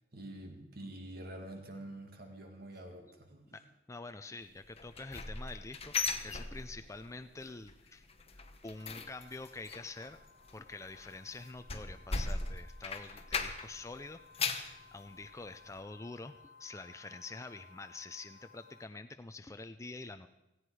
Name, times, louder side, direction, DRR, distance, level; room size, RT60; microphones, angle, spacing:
voice 1, 0.1-3.6, right 1 dB, 60° right, 4 dB, 2.2 m, -47 dB
voice 2, 3.9-8.0 8.6-10.2 10.5-20.3, left 3 dB, 15° left, 8 dB, 0.5 m, -47 dB
sound 1, 4.8-7.1 7.4-7.7 8.0-13.8 14.1-14.8 15.2-15.3 15.8-15.9, left 4 dB, 35° left, 1.1 m, -38 dB
sound 2, 8.8-18.8, left 5 dB, 80° right, 3.9 m, -60 dB
17.5 x 15.0 x 4.8 m, 0.92 s
head